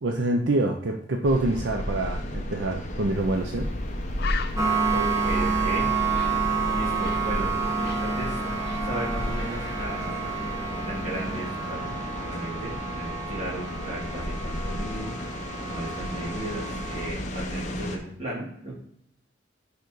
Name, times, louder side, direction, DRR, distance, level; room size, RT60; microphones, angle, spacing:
voice 1, 0.0-3.7, right 2 dB, 75° right, 3 dB, 0.6 m, -26 dB
sound 1, 1.2-18.0, left 1 dB, 40° left, 0.8 m, -33 dB
Bird, 3.3-3.5 3.8-3.9 4.2-7.3 7.6-9.3 9.6-9.9, left 7 dB, 60° left, 0.5 m, -39 dB
sound 2, 4.5-17.1, right 5 dB, 20° right, 1.2 m, -29 dB
voice 2, 4.9-5.9 6.7-8.4 8.8-10.2 10.7-15.1 15.6-18.7, right 1 dB, 35° right, -5 dB, 2.6 m, -35 dB
5.2 x 5.0 x 4.5 m, 0.71 s
head